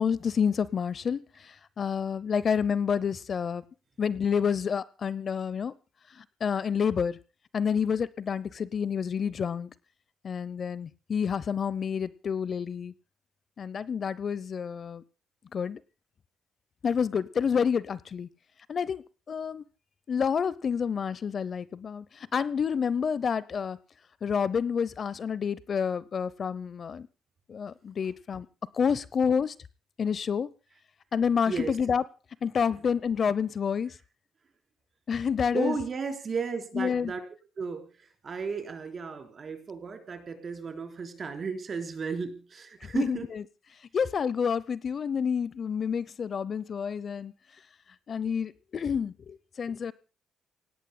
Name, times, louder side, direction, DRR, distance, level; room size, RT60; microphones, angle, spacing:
voice 1, 0.0-3.6 4.0-5.7 6.1-7.2 7.5-9.7 10.2-12.9 13.6-15.0 15.5-15.8 16.8-18.3 18.7-19.6 20.1-23.8 24.2-27.1 27.5-28.5 28.7-29.5 30.0-30.5 31.1-32.0 32.4-34.0 35.1-35.8 36.7-37.1 42.8-43.2 43.9-47.3 48.1-49.9, left 6 dB, 50° left, 0.7 m, -29 dB
voice 2, 31.5-31.8 35.5-37.2 37.6-43.3, right 5 dB, 45° right, 4.1 m, -34 dB
28.5 x 17.5 x 2.2 m
cardioid pair, 90°, 0 cm